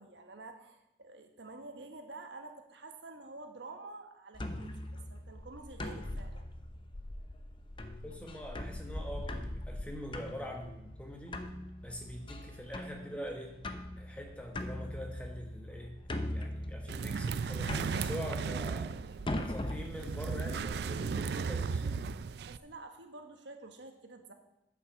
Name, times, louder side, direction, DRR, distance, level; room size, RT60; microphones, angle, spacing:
voice 1, 0.0-6.5 22.4-24.3, right 3 dB, 80° right, 5 dB, 1.3 m, -49 dB
sound 1, 4.3-21.2, left 1 dB, 30° left, 0.7 m, -41 dB
voice 2, 8.0-11.4 11.8-13.6 14.0-19.0 19.4-22.0, equal, 5° left, 1 dB, 1.3 m, -44 dB
sound 2, 16.9-22.6, right 5 dB, 65° right, 0.3 m, -35 dB
9.3 x 5.8 x 7.0 m, 0.87 s
head